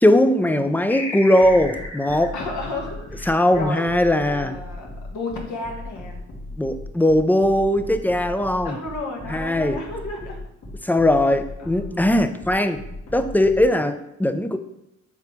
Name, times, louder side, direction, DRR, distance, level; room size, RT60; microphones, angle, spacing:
voice 1, 0.0-2.3 3.3-4.5 6.6-8.8 9.3-9.8 10.8-12.8 13.1-14.6, left 1 dB, 5° left, 9 dB, 0.4 m, -19 dB
sound 1, 0.9-3.9, left 2 dB, 35° left, 2.0 m, -35 dB
sound 2, 1.4-13.6, left 1 dB, 55° left, 1.8 m, -37 dB
voice 2, 2.3-3.8 4.2-6.2 8.6-10.4 11.6-12.3, left 3 dB, 70° left, 0 dB, 1.6 m, -33 dB
7.3 x 3.9 x 3.5 m, 0.85 s
cardioid pair, 90°, 30 cm